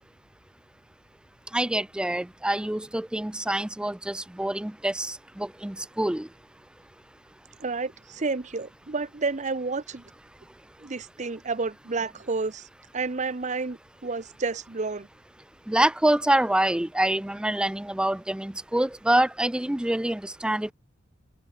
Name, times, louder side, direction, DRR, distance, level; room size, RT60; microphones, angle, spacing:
voice 1, 1.5-6.3 15.7-20.7, right 1 dB, 5° right, 0.3 m, -26 dB
voice 2, 7.6-10.0 10.8-12.7 12.9-15.1, right 4 dB, 35° right, 0.8 m, -30 dB
head